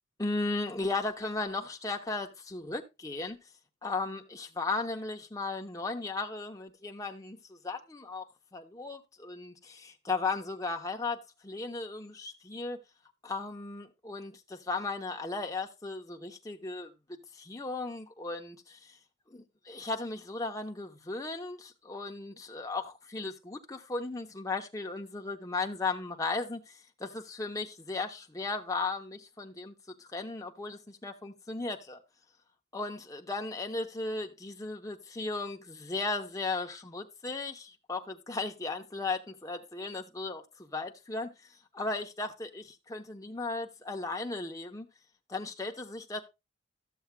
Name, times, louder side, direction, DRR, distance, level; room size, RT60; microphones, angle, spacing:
voice 1, 0.2-3.4 3.8-8.2 8.5-12.8 13.2-16.9 17.3-19.0 19.3-32.0 32.7-41.3 41.7-44.9 45.3-46.2, left 3 dB, 15° left, 0.8 m, -36 dB
13.5 x 7.1 x 2.2 m
head